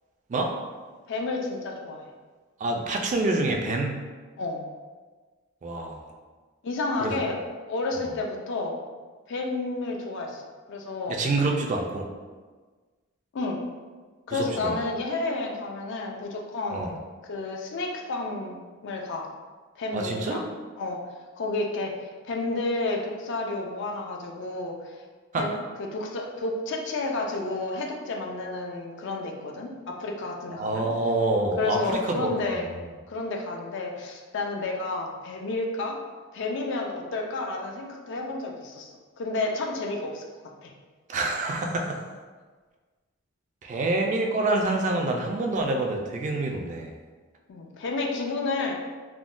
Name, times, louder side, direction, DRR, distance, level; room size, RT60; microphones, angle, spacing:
voice 1, 1.1-2.1 4.4-4.6 6.6-7.4 7.7-8.8 9.3-10.4 10.7-11.2 13.3-13.6 14.3-16.9 17.3-19.3 19.8-20.5 20.8-21.0 21.4-21.9 22.2-24.9 25.4-30.9 31.6-32.7 33.1-36.0 36.3-40.3 40.6-40.7 47.5-48.8, left 3 dB, 60° left, 1 dB, 0.4 m, -31 dB
voice 2, 2.6-4.0 5.6-6.0 7.0-7.2 11.1-12.1 14.3-14.8 16.7-16.9 19.9-20.5 25.3-25.5 30.6-32.8 41.1-42.0 43.6-46.9, right 2 dB, 35° right, 2 dB, 0.3 m, -27 dB
3.5 x 2.1 x 2.5 m, 1.4 s
head